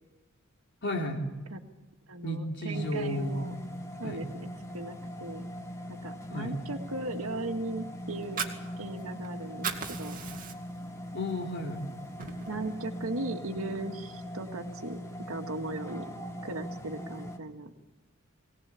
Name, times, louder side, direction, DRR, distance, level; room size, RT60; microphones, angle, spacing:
voice 1, 0.8-1.3 2.2-3.4 4.0-4.2 6.3-6.5 11.1-11.9, left 1 dB, 60° left, 1 dB, 3.9 m, -33 dB
voice 2, 2.1-3.5 4.0-5.5 5.9-8.4 8.8-10.2 12.5-16.1 16.4-17.7, right 2 dB, 85° right, 5 dB, 2.0 m, -37 dB
sound 1, 2.7-17.4, equal, 15° left, 1.9 m, -41 dB
Fire, 8.1-9.3 9.5-10.9 11.3-11.4 11.8-12.8, right 6 dB, 40° right, 2.3 m, -37 dB
23.0 x 18.5 x 8.5 m, 1.1 s
head